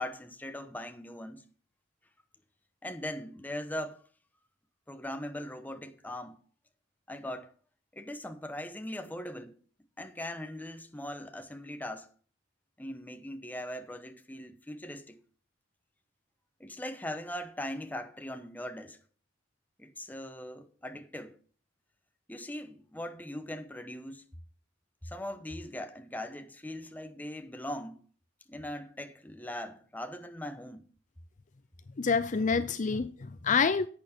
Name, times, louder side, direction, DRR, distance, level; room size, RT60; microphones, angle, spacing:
voice 1, 0.0-1.4 2.8-4.0 4.9-6.4 7.1-7.5 7.9-9.6 10.0-12.1 12.8-15.2 16.6-19.0 19.8-21.4 22.3-24.2 25.0-28.0 28.5-30.9, left 1 dB, 10° left, 1.0 m, -40 dB
voice 2, 32.0-33.9, left 5 dB, 40° left, 0.5 m, -27 dB
11.5 x 8.6 x 4.4 m
head